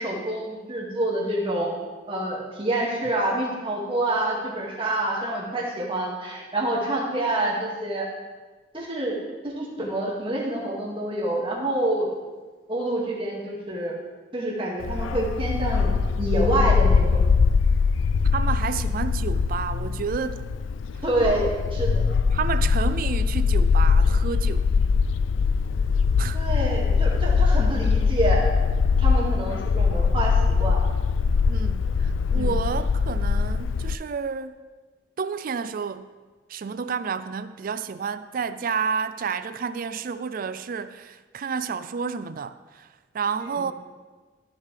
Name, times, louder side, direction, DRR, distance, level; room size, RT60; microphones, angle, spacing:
voice 1, 0.0-1.7 2.1-8.1 8.7-9.2 9.4-12.1 12.7-14.0 14.3-15.9 16.2-17.2 21.0-22.1 26.3-28.5 29.0-30.8 32.4-32.5 43.4-43.5, right 1 dB, 30° right, 2.2 m, -27 dB
Bark, 14.8-33.9, left 5 dB, 85° left, 0.4 m, -22 dB
voice 2, 18.3-20.4 22.3-24.7 26.2-26.4 31.5-34.6 35.2-36.1 36.5-42.9 43.1-43.7, right 6 dB, 50° right, 0.4 m, -30 dB
14.0 x 7.4 x 3.4 m
head